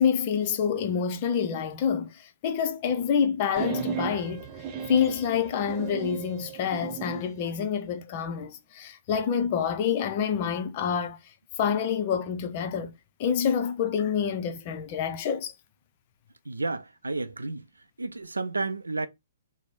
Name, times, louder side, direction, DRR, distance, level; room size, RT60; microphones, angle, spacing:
voice 1, 0.0-4.5 4.9-11.2 11.6-12.9 13.2-15.5, left 7 dB, 40° left, 0.6 m, -27 dB
sound 1, 3.6-7.3, right 6 dB, 25° right, 0.6 m, -35 dB
voice 2, 16.5-17.7 18.0-19.1, right 3 dB, 85° right, 0.4 m, -31 dB
3.1 x 2.1 x 4.0 m
figure-of-eight pair, 125°, 0 cm